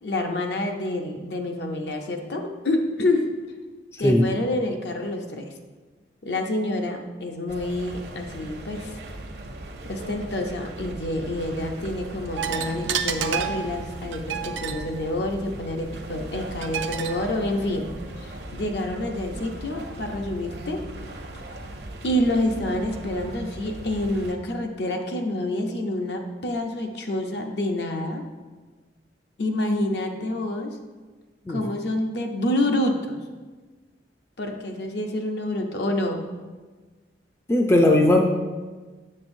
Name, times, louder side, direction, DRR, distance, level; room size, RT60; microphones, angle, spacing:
voice 1, 0.0-3.3 4.0-5.5 6.2-9.0 9.8-20.8 22.0-28.3 29.4-30.8 31.5-33.2 34.4-36.3, left 1 dB, 65° left, 3 dB, 0.7 m, -27 dB
sound 1, 7.5-24.3, right 1 dB, 60° right, 0.7 m, -39 dB
sound 2, 12.4-18.4, right 8 dB, 90° right, 0.5 m, -32 dB
voice 2, 37.5-38.2, left 1 dB, 15° left, 2 dB, 0.4 m, -17 dB
7.5 x 6.8 x 2.6 m, 1.3 s
head